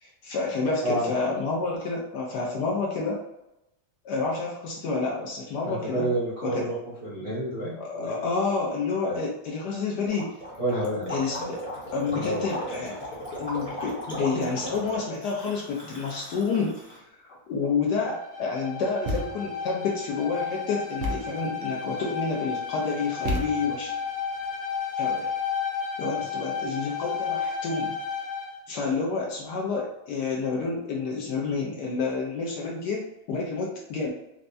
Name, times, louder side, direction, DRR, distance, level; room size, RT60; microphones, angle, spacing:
voice 1, 0.0-3.2 4.0-6.1 6.4-6.6 7.8-10.3 11.1-11.6 11.9-13.0 13.4-23.9 25.0-25.3 26.0-28.0 28.7-34.1, left 4 dB, 70° left, -2 dB, 1.1 m, -29 dB
voice 2, 5.6-6.8 7.0-8.1 9.1-9.2 10.6-11.1 12.0-12.4 26.1-26.3, right 1 dB, 40° right, -9 dB, 0.8 m, -29 dB
Gurgling, 10.1-17.0, equal, 10° left, 0.6 m, -36 dB
Bowed string instrument, 18.1-28.6, left 6 dB, 40° left, 1.0 m, -32 dB
Thump thud, 19.1-19.6 21.0-21.5 23.3-23.9, equal, 75° right, 1.3 m, -31 dB
4.4 x 2.1 x 2.6 m, 0.89 s
omnidirectional pair, 2.1 m